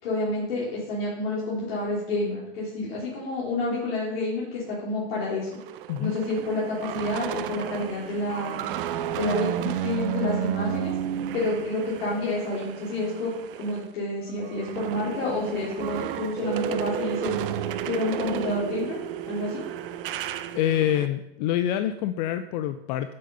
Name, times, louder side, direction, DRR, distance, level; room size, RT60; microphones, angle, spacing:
voice 1, 0.0-5.6 6.0-8.6 9.1-11.0 11.3-17.3 17.8-19.0 19.3-19.6, left 2 dB, 65° left, -6 dB, 3.3 m, -29 dB
sound 1, 5.5-13.9 14.2-21.1, right 11 dB, 55° right, 0.8 m, -32 dB
voice 2, 20.5-23.1, left 11 dB, 45° left, 11 dB, 0.6 m, -26 dB
8.6 x 8.5 x 5.4 m, 0.89 s
figure-of-eight pair, 90°, 32 cm